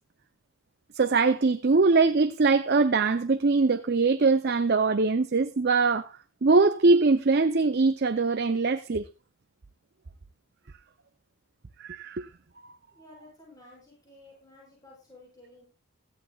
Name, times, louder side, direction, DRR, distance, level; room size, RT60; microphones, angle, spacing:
voice 1, 0.9-6.1 6.4-9.1 11.8-12.3, right 3 dB, 45° right, 0.5 m, -22 dB
voice 2, 12.9-15.7, left 2 dB, 15° left, 6.7 m, -53 dB
17.0 x 14.0 x 2.4 m
head